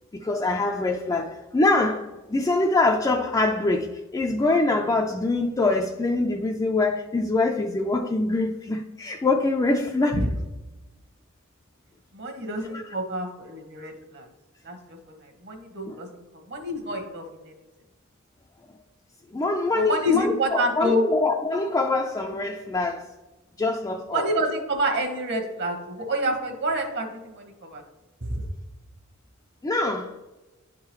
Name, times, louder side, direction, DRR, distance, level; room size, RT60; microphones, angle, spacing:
voice 1, 0.1-10.2 12.7-12.9 15.9-16.0 19.3-23.1 23.6-24.3 29.6-30.1, left 2 dB, 15° left, 2 dB, 0.3 m, -24 dB
voice 2, 12.1-14.3 14.6-15.0 15.4-16.1 16.5-17.5 19.7-21.0 24.1-27.8 28.2-28.4, equal, 55° right, 4 dB, 1.1 m, -27 dB
11.0 x 3.7 x 3.0 m, 1.1 s
head